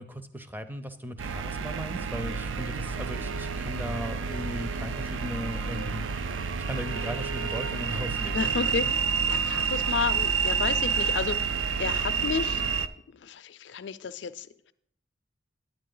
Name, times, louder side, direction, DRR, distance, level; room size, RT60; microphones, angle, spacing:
voice 1, 0.0-6.1 6.6-8.5, equal, 10° right, 9 dB, 0.5 m, -37 dB
sound 1, 1.2-12.9, right 6 dB, 75° right, 0.4 m, -29 dB
voice 2, 8.3-9.0 9.3-11.5 11.8-12.6 13.2-14.5, left 5 dB, 65° left, 12 dB, 0.4 m, -31 dB
9.6 x 9.2 x 3.8 m, 0.72 s
head